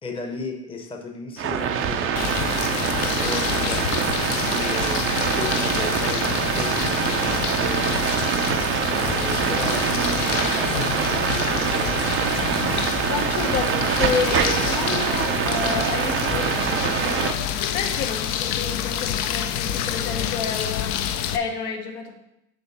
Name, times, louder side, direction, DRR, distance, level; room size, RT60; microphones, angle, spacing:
voice 1, 0.0-2.9 3.2-7.9 8.9-12.1, left 4 dB, 10° left, 3 dB, 0.8 m, -35 dB
sound 1, 1.4-17.3, right 8 dB, 30° right, 0.5 m, -24 dB
sound 2, 2.2-21.4, left 10 dB, 40° left, 0.4 m, -28 dB
voice 2, 13.1-20.9 21.3-22.2, left 5 dB, 70° left, 3 dB, 1.2 m, -30 dB
6.7 x 3.2 x 5.6 m, 0.87 s
hypercardioid pair, 90°, 48 cm